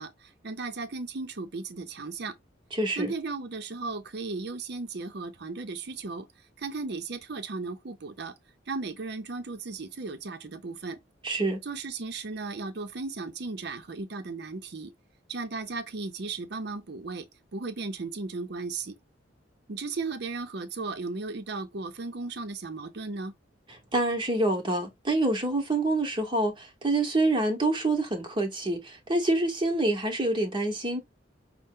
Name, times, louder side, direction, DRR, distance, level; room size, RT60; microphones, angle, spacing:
voice 1, 0.0-2.3 3.0-6.3 6.6-8.3 8.7-11.0 11.6-14.9 15.3-17.3 17.5-18.9 19.7-23.3, right 3 dB, 60° right, 0.7 m, -35 dB
voice 2, 2.7-3.1 11.2-11.6 23.7-31.0, right 2 dB, 25° right, 0.9 m, -27 dB
5.4 x 2.1 x 3.6 m
head